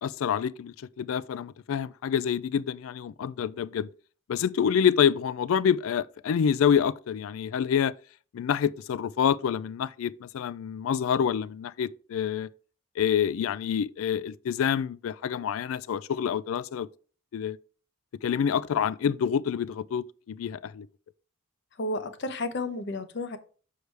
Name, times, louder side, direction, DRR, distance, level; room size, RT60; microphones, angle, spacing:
voice 1, 0.0-3.9 4.3-7.9 8.3-12.5 13.0-16.9 17.3-17.6 18.2-20.9, left 8 dB, 75° left, 0.3 m, -27 dB
voice 2, 21.7-23.4, left 2 dB, 55° left, 0.7 m, -32 dB
6.6 x 4.7 x 3.3 m
head